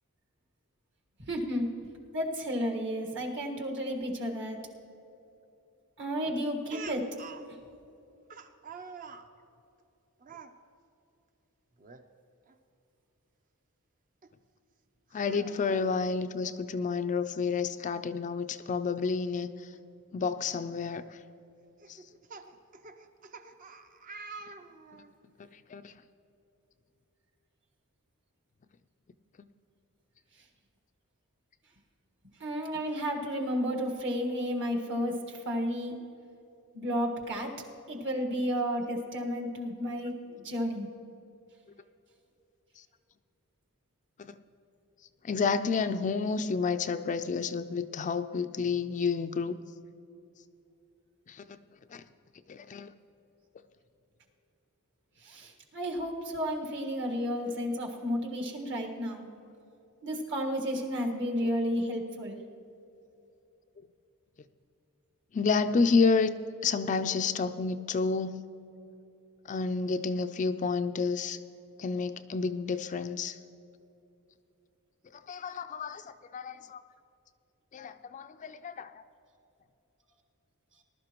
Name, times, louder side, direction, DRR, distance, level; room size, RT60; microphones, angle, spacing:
voice 1, 1.2-1.7 2.1-4.7 6.0-7.2 32.4-35.9 36.7-37.6 37.9-40.9 55.2-59.3 60.0-62.4, equal, 55° right, 1 dB, 1.6 m, -32 dB
Speech, 6.7-7.5 8.3-9.3 10.2-10.5 11.8-12.0 12.5-12.6 14.2-14.3 15.1-16.0 17.3-17.4 17.7-17.8 19.7-19.8 20.5-20.7 21.8-25.1, right 4 dB, 35° right, 0.6 m, -46 dB
voice 2, 15.1-19.7 20.1-21.2 21.9-22.0 25.7-25.9 44.2-44.4 45.2-49.6 51.3-51.4 51.9-52.0 52.5-52.9 65.3-66.4 66.6-68.4 69.5-71.4 71.8-73.4 75.3-76.8 77.7-78.9, left 4 dB, 35° left, 10 dB, 0.3 m, -30 dB
19.5 x 12.0 x 3.0 m, 2.8 s
head